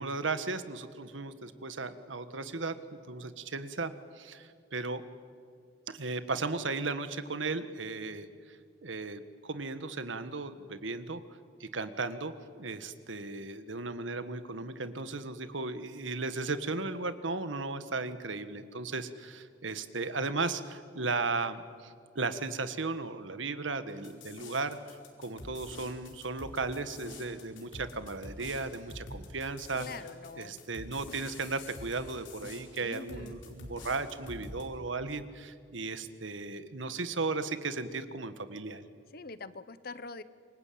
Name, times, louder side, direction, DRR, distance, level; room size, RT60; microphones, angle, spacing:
voice 1, 0.0-2.7 3.1-5.0 5.9-11.2 11.6-24.8 25.2-29.8 30.3-38.8, right 3 dB, 85° right, 11 dB, 1.6 m, -36 dB
sound 1, 24.0-34.6, left 2 dB, 80° left, 4.7 m, -47 dB
voice 2, 29.8-30.6 32.8-33.4 39.1-40.2, left 3 dB, 50° left, 15 dB, 0.9 m, -44 dB
27.5 x 24.5 x 8.7 m, 2.2 s
head